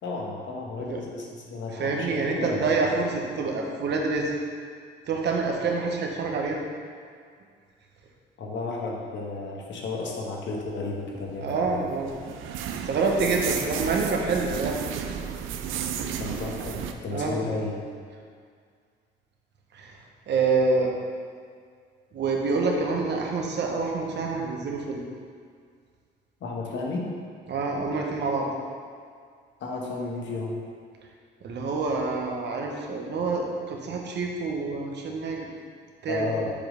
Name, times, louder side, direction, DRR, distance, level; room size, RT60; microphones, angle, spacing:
voice 1, 0.0-2.9 8.4-11.8 16.2-17.8 26.4-27.1 29.6-30.6 36.1-36.5, left 3 dB, 65° left, -1 dB, 1.2 m, -33 dB
voice 2, 1.7-4.3 5.1-6.6 11.4-12.1 12.8-14.8 16.6-16.7 17.1-17.4 19.7-20.0 20.3-20.9 22.1-25.0 27.5-28.5 31.4-35.4 36.0-36.3, right 4 dB, 60° right, 0 dB, 1.0 m, -27 dB
sound 1, 11.0-16.9, right 8 dB, 85° right, 0.5 m, -33 dB
7.1 x 3.1 x 5.0 m, 2.1 s
cardioid pair, 90°, 20 cm